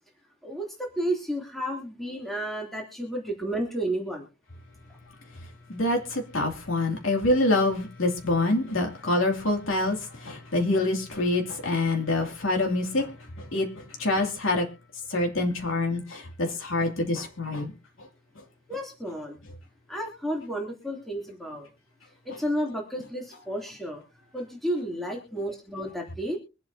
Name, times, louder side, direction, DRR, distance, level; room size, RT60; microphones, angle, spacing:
voice 1, 0.4-4.3 18.7-19.4 19.9-21.7 22.2-24.0 24.3-26.4, right 1 dB, ahead, 3.0 m, -32 dB
voice 2, 5.7-13.1 13.4-14.6 15.1-17.7, left 2 dB, 85° left, 2.7 m, -26 dB
24.5 x 8.4 x 2.8 m
head